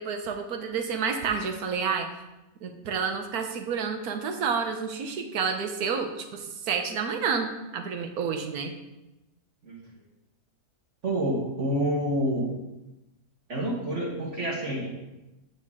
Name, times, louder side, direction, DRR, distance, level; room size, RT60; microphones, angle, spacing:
voice 1, 0.0-2.1 2.6-8.7, right 6 dB, 85° right, 5 dB, 1.4 m, -29 dB
voice 2, 11.0-12.5 13.5-14.9, right 1 dB, 55° right, -4 dB, 1.6 m, -28 dB
8.5 x 6.6 x 3.6 m, 0.96 s
omnidirectional pair, 1.5 m